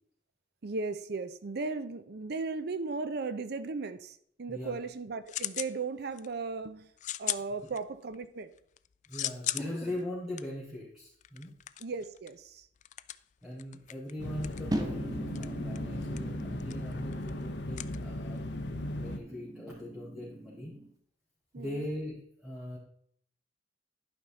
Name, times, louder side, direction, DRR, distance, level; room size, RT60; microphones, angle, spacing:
voice 1, 0.6-6.9 7.2-8.5 11.8-12.7 21.5-21.9, right 4 dB, 60° right, 12 dB, 0.6 m, -36 dB
sound 1, 4.6-5.8 6.1-6.5 7.0-8.2 8.5-18.6, left 13 dB, 45° left, 0.3 m, -39 dB
voice 2, 9.1-11.5 13.4-18.4 19.0-20.7 21.5-22.8, left 1 dB, 5° right, -9 dB, 3.2 m, -40 dB
sound 2, 14.2-19.2, left 1 dB, 70° left, 0.8 m, -37 dB
sound 3, 14.7-20.9, right 1 dB, 20° right, 1.0 m, -41 dB
11.5 x 5.3 x 4.0 m, 0.65 s
head